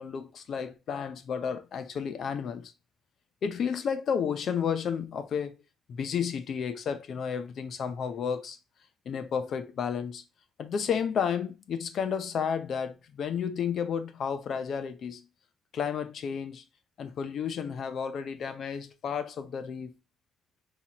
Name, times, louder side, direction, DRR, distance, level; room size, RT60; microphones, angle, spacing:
voice 1, 0.0-2.7 3.4-5.6 5.9-8.6 9.1-10.2 10.6-15.3 15.7-16.6 17.0-20.0, left 7 dB, 65° left, 0.7 m, -32 dB
5.6 x 3.0 x 3.0 m
cardioid pair, 90°, 0 cm